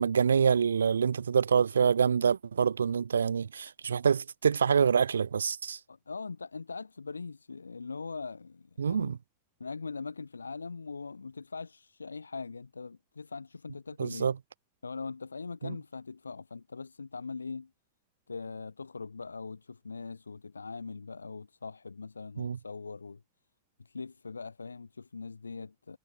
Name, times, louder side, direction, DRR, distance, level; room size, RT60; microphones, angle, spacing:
voice 1, 0.0-5.8 8.8-9.2 14.0-14.3 15.6-15.8 22.4-22.6, right 6 dB, 70° right, 0.4 m, -26 dB
voice 2, 5.9-9.1 9.6-14.3 14.8-17.7 18.3-23.2 23.8-26.0, left 4 dB, 75° left, 1.5 m, -41 dB
figure-of-eight pair, 90°, 0 cm